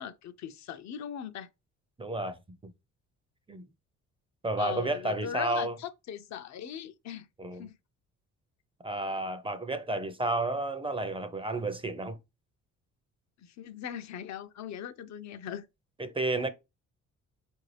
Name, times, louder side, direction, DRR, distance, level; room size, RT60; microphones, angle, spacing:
voice 1, 0.0-1.5 4.6-7.3 7.6-7.7 13.4-15.7, left 9 dB, 65° left, 0.5 m, -39 dB
voice 2, 2.0-2.4 2.6-2.7 3.5-3.7 4.4-5.7 7.4-7.7 8.8-12.2 16.0-16.5, right 2 dB, 20° right, 0.5 m, -31 dB
4.4 x 2.6 x 3.2 m
cardioid pair, 90°, 30 cm